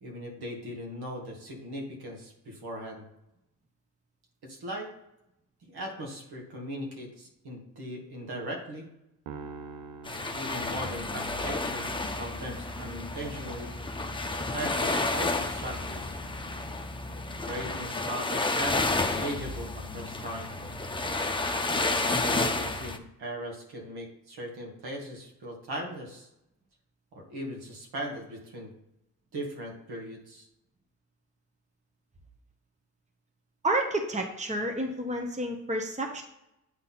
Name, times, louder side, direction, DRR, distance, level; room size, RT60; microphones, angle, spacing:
voice 1, 0.0-3.1 4.4-4.9 5.6-8.9 10.3-13.7 14.5-16.2 17.5-20.5 21.7-26.3 27.1-28.7 29.3-30.5, equal, 65° right, 0 dB, 2.3 m, -39 dB
sound 1, 9.3-11.6, right 5 dB, 90° right, 0.7 m, -44 dB
sound 2, 10.1-23.0, left 2 dB, 10° left, 0.9 m, -31 dB
voice 2, 33.6-36.2, right 1 dB, 15° right, 3 dB, 1.2 m, -30 dB
8.7 x 4.1 x 4.1 m, 0.86 s
hypercardioid pair, 50°, 41 cm